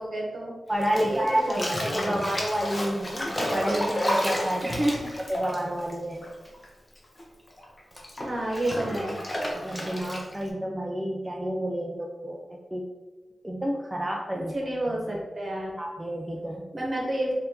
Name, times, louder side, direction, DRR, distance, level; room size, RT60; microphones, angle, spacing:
voice 1, 0.0-0.5 1.0-2.3 4.6-5.0 8.2-9.2 14.3-15.7 16.7-17.3, right 1 dB, 40° right, -3 dB, 1.2 m, -30 dB
voice 2, 0.7-4.8 5.3-6.2 9.5-12.8 13.4-14.6 14.9-15.2 15.8-16.7, equal, 10° right, -1 dB, 0.4 m, -30 dB
Bathtub (filling or washing), 0.8-6.7 6.9-10.5, equal, 25° left, 0.8 m, -31 dB
3.4 x 2.6 x 4.4 m, 1.2 s
wide cardioid pair, 95°, 0 cm